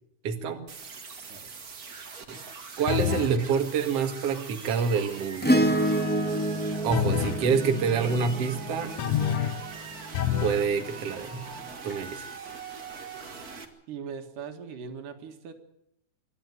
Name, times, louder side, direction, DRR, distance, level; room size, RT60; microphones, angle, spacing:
voice 1, 0.2-0.6 2.3-2.4 2.8-5.7 6.8-8.9 10.4-11.4 11.8-12.3, right 6 dB, 55° right, 5 dB, 2.7 m, -27 dB
sound 1, 0.7-13.6, right 5 dB, 35° right, 1.9 m, -42 dB
sound 2, 2.9-3.4 6.9-7.5 9.0-9.7 10.1-10.7, left 10 dB, 65° left, 1.9 m, -27 dB
Acoustic guitar / Strum, 5.4-10.0 11.9-12.0, right 1 dB, 5° left, 1.1 m, -28 dB
voice 2, 13.9-15.5, right 6 dB, 85° right, 6 dB, 3.3 m, -40 dB
26.5 x 12.0 x 9.5 m, 0.77 s
omnidirectional pair, 3.6 m